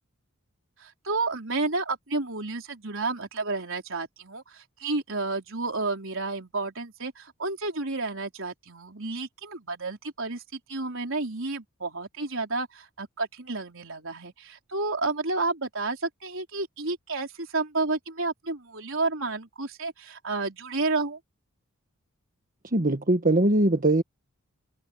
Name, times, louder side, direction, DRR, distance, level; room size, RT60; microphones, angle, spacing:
voice 1, 0.8-21.2, right 3 dB, 60° right, 4.5 m, -31 dB
voice 2, 22.7-24.0, right 2 dB, 40° right, 1.4 m, -21 dB
head